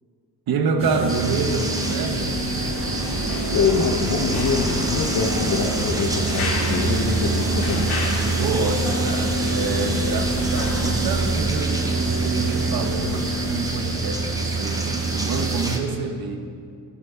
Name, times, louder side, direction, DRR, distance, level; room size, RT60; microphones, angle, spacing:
voice 1, 0.5-2.4 8.4-16.4, right 4 dB, 70° right, 6 dB, 1.1 m, -27 dB
sound 1, 0.8-15.8, right 3 dB, 35° right, 1.3 m, -25 dB
sound 2, 1.1-15.8, right 1 dB, 10° right, 1.0 m, -30 dB
sound 3, 2.5-10.9, left 2 dB, 90° left, 2.4 m, -34 dB
voice 2, 3.5-8.0, left 5 dB, 55° left, 1 dB, 0.9 m, -24 dB
15.5 x 6.9 x 5.1 m, 2.4 s
cardioid pair, 130°, 37 cm